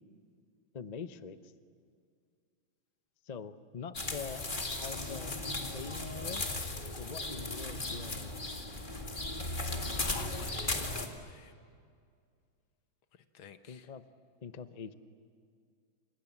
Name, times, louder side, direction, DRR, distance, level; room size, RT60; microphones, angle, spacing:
voice 1, 0.7-1.4 3.2-4.4 4.8-5.4 5.7-6.4 7.0-8.3 13.4-14.0 14.4-14.9, left 6 dB, 40° left, 11 dB, 0.5 m, -44 dB
sound 1, 3.9-11.1, left 2 dB, 25° left, 2.1 m, -36 dB
voice 2, 10.0-11.5 13.3-13.9, left 8 dB, 80° left, 9 dB, 2.0 m, -49 dB
29.0 x 27.5 x 7.4 m, 2.2 s
omnidirectional pair, 2.2 m